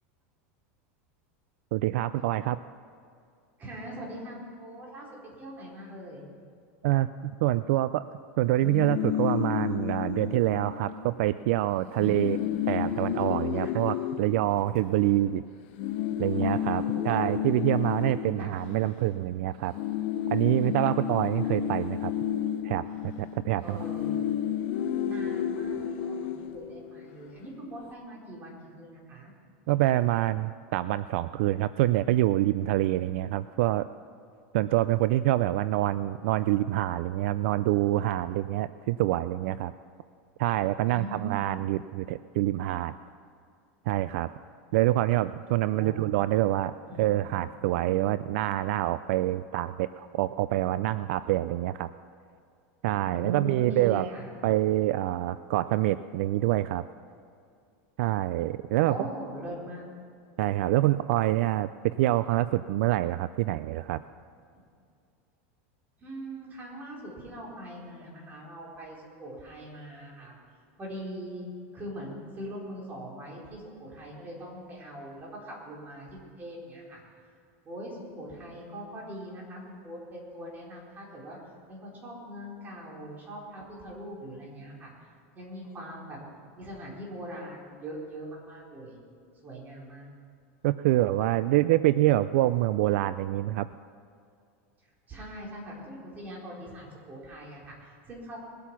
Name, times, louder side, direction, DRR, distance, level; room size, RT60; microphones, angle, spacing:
voice 1, 1.7-2.6 6.8-8.1 8.4-12.4 12.7-15.4 16.2-19.7 20.3-22.1 22.6-23.8 29.7-33.8 34.5-39.7 40.4-43.0 43.9-44.3 44.7-46.7 47.0-51.9 52.8-54.1 54.4-56.8 58.0-58.9 60.4-64.0 90.6-93.7, right 15 dB, 70° right, 14 dB, 0.4 m, -26 dB
voice 2, 3.6-6.2 12.0-12.5 13.5-13.7 16.8-17.4 18.4-18.5 20.5-21.2 23.6-24.2 25.0-29.3 40.8-41.6 45.7-46.1 46.9-47.4 53.1-54.3 58.8-59.8 66.0-70.4 70.8-71.5 71.7-77.0 77.6-81.4 81.7-85.1 85.3-86.2 86.5-89.0 89.4-90.1 95.1-98.4, equal, 25° right, -3 dB, 4.1 m, -42 dB
sound 1, 8.5-11.1 11.4-11.6 11.8-15.2 15.8-19.3 19.6-27.2, left 9 dB, 60° left, 0.8 m, -31 dB
20.5 x 8.4 x 6.0 m, 2.3 s
supercardioid pair, 145°, 7 cm